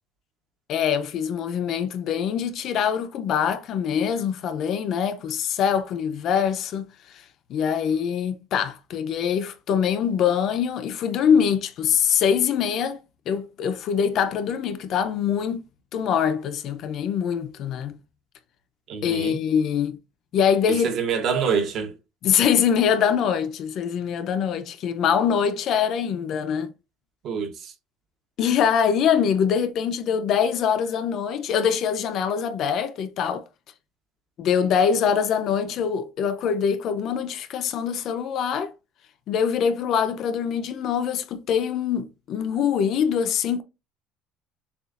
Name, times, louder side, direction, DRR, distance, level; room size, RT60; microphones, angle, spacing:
voice 1, 0.7-6.8 7.5-13.0 13.3-15.7 15.9-18.0 19.0-20.0 20.3-20.9 22.2-26.7 28.4-33.4 34.4-38.7 39.3-43.6, left 7 dB, 45° left, 0.5 m, -23 dB
voice 2, 18.9-19.4 20.7-21.9 27.2-27.7, right 6 dB, 40° right, 0.9 m, -26 dB
6.8 x 2.4 x 2.4 m
cardioid pair, 175°, 0 cm